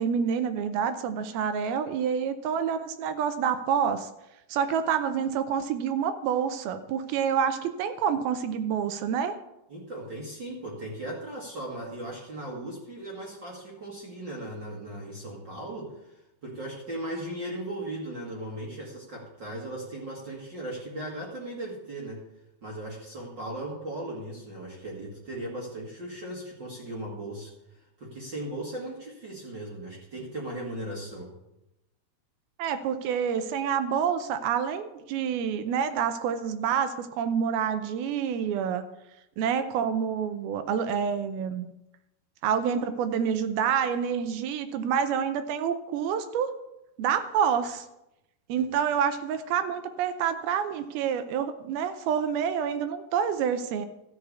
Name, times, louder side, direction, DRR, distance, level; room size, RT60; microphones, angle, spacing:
voice 1, 0.0-4.1 4.5-9.4 32.6-38.8 39.4-41.7 42.4-46.5 47.0-47.9 48.5-53.9, right 7 dB, 80° right, 9 dB, 2.5 m, -27 dB
voice 2, 9.7-16.1 16.4-22.2 22.6-27.5 28.0-31.3 48.5-48.7, right 1 dB, 40° right, -3 dB, 1.8 m, -37 dB
13.5 x 4.8 x 8.3 m, 0.91 s
omnidirectional pair, 4.4 m